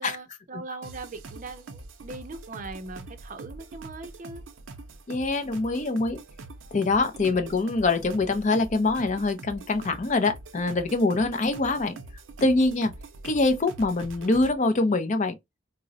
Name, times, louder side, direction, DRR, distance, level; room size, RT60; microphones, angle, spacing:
voice 1, 0.0-4.4 7.2-7.4 11.2-11.4, right 3 dB, 40° right, 0.5 m, -40 dB
sound 1, 0.8-14.5, right 2 dB, 90° right, 0.5 m, -44 dB
voice 2, 5.1-6.2 6.7-12.0 12.4-12.9 13.2-15.3, left 3 dB, 40° left, 0.5 m, -24 dB
3.7 x 2.0 x 2.6 m
head